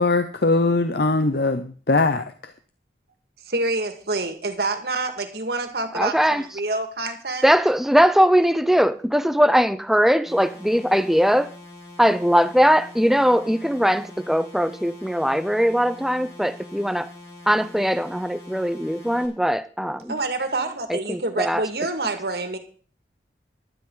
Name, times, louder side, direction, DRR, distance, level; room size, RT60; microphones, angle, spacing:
voice 1, 0.0-2.2, left 3 dB, 65° left, 0.8 m, -20 dB
voice 2, 3.4-7.5 20.1-22.6, right 2 dB, 65° right, 2.0 m, -27 dB
voice 3, 5.9-6.4 7.4-11.5 12.0-17.1 17.5-20.2 20.9-21.6, equal, ahead, 0.6 m, -20 dB
sound 1, 10.3-19.3, left 2 dB, 15° left, 5.9 m, -44 dB
16.0 x 12.0 x 3.9 m
head